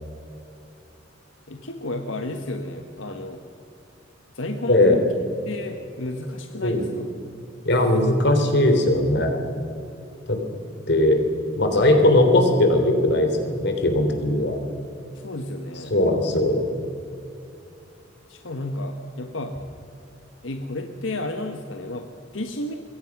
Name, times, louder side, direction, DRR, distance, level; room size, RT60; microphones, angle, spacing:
voice 1, 1.5-3.4 4.3-5.1 5.4-7.1 10.8-10.9 15.1-16.0 18.3-19.6 20.4-22.8, left 1 dB, 85° left, 5 dB, 1.4 m, -32 dB
voice 2, 4.7-5.0 6.6-6.9 7.7-9.4 10.3-10.4 10.9-11.2 11.6-14.6 15.9-16.6, left 1 dB, 60° left, 5 dB, 3.5 m, -19 dB
26.5 x 22.0 x 6.0 m, 2.7 s
head